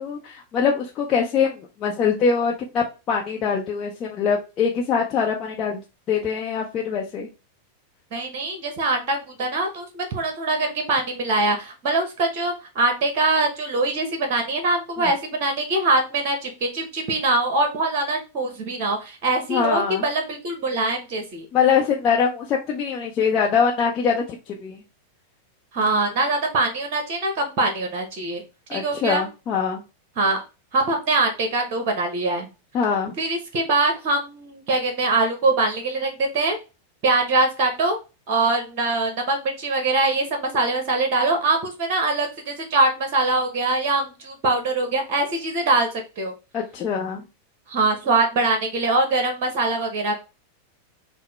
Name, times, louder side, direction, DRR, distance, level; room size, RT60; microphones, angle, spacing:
voice 1, 0.0-5.8 6.1-7.3 15.0-15.1 19.5-20.0 21.5-24.8 25.8-26.0 28.7-29.8 32.7-33.1 46.5-47.2, left 6 dB, 30° left, -2 dB, 0.7 m, -23 dB
voice 2, 8.1-21.5 25.7-28.4 28.7-29.2 30.2-30.4 30.7-32.4 33.2-36.6 37.0-38.0 38.3-45.9 46.2-46.3 47.7-50.1, right 2 dB, 40° right, 5 dB, 0.9 m, -23 dB
5.7 x 2.1 x 3.1 m, 0.30 s
figure-of-eight pair, 90°, 0 cm